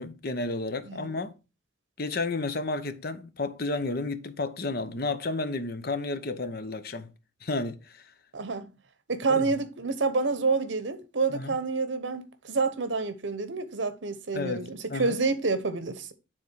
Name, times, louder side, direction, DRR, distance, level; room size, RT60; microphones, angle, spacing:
voice 1, 0.0-1.3 2.0-7.1 7.4-8.1 9.3-9.5 11.3-11.6 14.3-15.2, left 3 dB, 50° left, 0.8 m, -32 dB
voice 2, 8.3-8.7 9.1-16.1, right 4 dB, 70° right, 1.0 m, -28 dB
9.5 x 3.8 x 4.6 m
head